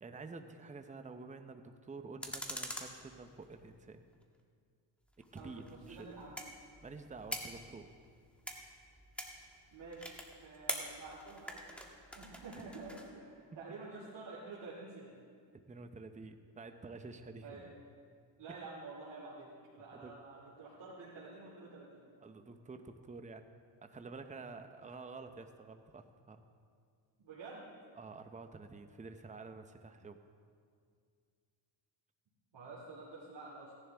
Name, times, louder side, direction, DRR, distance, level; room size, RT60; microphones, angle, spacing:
voice 1, 0.0-4.0 5.3-6.1 6.8-7.9 15.7-17.7 19.9-20.1 22.2-23.5 23.8-26.5 28.0-30.2, right 3 dB, 15° right, 7 dB, 0.8 m, -49 dB
sound 1, 2.2-3.8 5.2-13.1, equal, ahead, 1.6 m, -45 dB
voice 2, 5.4-6.4 9.7-11.8 12.1-15.2 17.4-17.7 18.4-22.0 27.2-27.7 32.5-33.7, right 3 dB, 60° right, -6 dB, 2.6 m, -49 dB
17.0 x 11.0 x 3.5 m, 2.2 s
cardioid pair, 80°, 47 cm